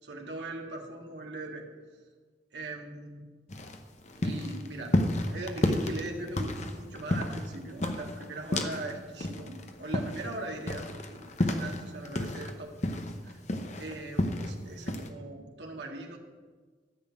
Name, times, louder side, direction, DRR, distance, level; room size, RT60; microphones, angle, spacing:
voice 1, 0.0-1.7 2.5-3.2 4.2-5.0 5.3-12.8 13.2-13.4 13.8-16.2, right 2 dB, 80° right, 0 dB, 1.8 m, -40 dB
sound 1, 3.5-8.9 9.2-12.5 12.8-14.5 14.9-15.1, left 1 dB, 40° left, 1.0 m, -31 dB
13.5 x 6.3 x 8.4 m, 1.5 s
head